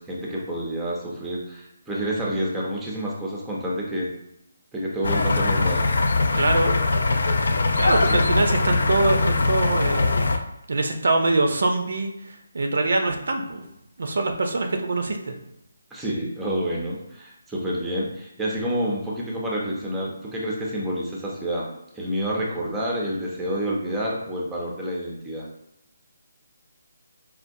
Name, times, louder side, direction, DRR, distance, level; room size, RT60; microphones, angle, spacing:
voice 1, 0.0-4.1 4.7-5.8 8.1-8.2 15.9-21.7 21.9-25.5, equal, 5° right, -4 dB, 0.5 m, -28 dB
sound 1, 5.0-10.4, left 3 dB, 70° left, 0.4 m, -21 dB
voice 2, 6.3-6.7 7.8-10.4 10.7-12.1 12.5-13.6 14.0-15.3, right 2 dB, 65° right, 4 dB, 0.5 m, -23 dB
4.3 x 2.2 x 2.6 m, 0.82 s
hypercardioid pair, 165°, 0 cm